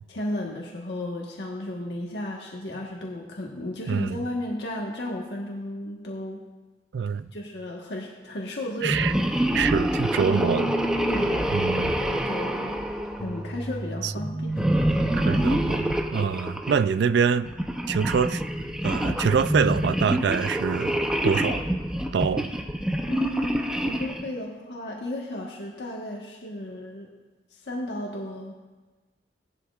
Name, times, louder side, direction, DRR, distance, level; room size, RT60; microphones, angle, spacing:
voice 1, 0.1-6.4 7.3-9.1 11.1-12.8 13.2-14.7 23.1-27.1 27.5-28.5, left 1 dB, 80° left, -2 dB, 1.3 m, -34 dB
voice 2, 3.9-4.2 6.9-7.3 8.8-9.1 9.5-10.7 11.5-12.0 14.0-14.1 15.1-17.5 17.9-18.4 18.8-21.0 21.2-21.6 22.1-22.5, right 6 dB, 80° right, 13 dB, 0.4 m, -25 dB
sound 1, 8.8-13.7 14.5-16.8 17.5-24.3, equal, 5° right, 0.7 m, -26 dB
sound 2, 10.2-16.1, right 1 dB, 35° left, 4.1 m, -32 dB
17.5 x 11.5 x 2.4 m, 1.3 s
head